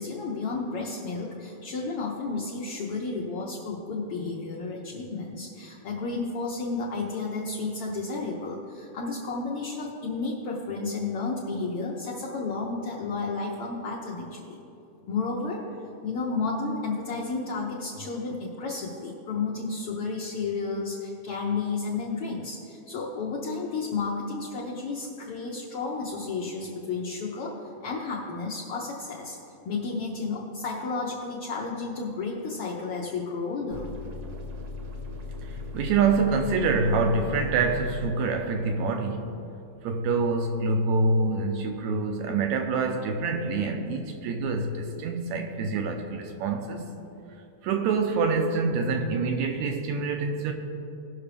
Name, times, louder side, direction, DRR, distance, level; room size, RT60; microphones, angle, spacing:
voice 1, 0.0-14.6 15.1-15.6 16.0-29.4 29.6-33.9 35.5-35.6, left 4 dB, 80° left, -4 dB, 1.3 m, -32 dB
sound 1, 33.7-38.1, left 3 dB, 65° right, 1.3 m, -38 dB
voice 2, 35.4-39.4 39.8-47.0 47.6-50.5, right 4 dB, 80° right, 4 dB, 1.7 m, -26 dB
17.5 x 6.0 x 3.4 m, 2.8 s
omnidirectional pair, 3.7 m